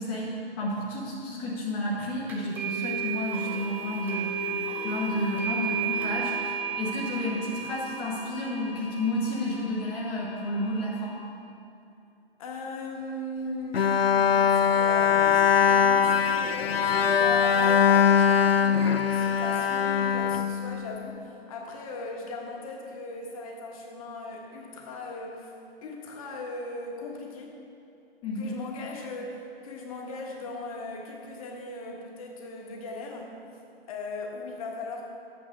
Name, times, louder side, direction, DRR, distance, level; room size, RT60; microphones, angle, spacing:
voice 1, 0.0-11.2 28.2-28.6, left 1 dB, 15° left, -5 dB, 0.9 m, -31 dB
sound 1, 2.3-11.2, right 5 dB, 5° right, 0.6 m, -34 dB
voice 2, 12.4-25.5 25.8-27.6 28.3-33.3 33.9-35.0, left 2 dB, 35° left, 0 dB, 1.4 m, -38 dB
Bowed string instrument, 13.7-21.1, left 7 dB, 70° left, 0.6 m, -22 dB
12.0 x 8.5 x 3.6 m, 2.6 s
figure-of-eight pair, 125°, 31 cm